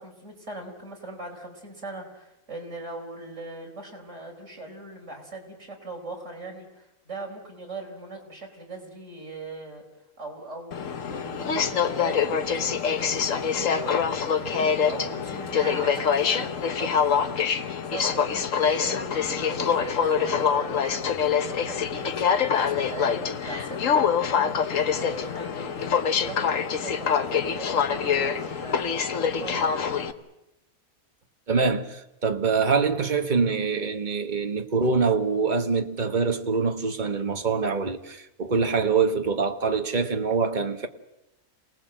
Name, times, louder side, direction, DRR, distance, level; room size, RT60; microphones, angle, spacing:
voice 1, 0.0-9.8 10.2-28.8 29.2-29.9, right 2 dB, 50° right, 4.8 m, -40 dB
Aircraft, 10.7-30.1, left 7 dB, 60° left, 1.4 m, -25 dB
voice 2, 31.5-40.9, right 5 dB, 30° right, 1.4 m, -24 dB
28.0 x 19.5 x 7.7 m
omnidirectional pair, 1.6 m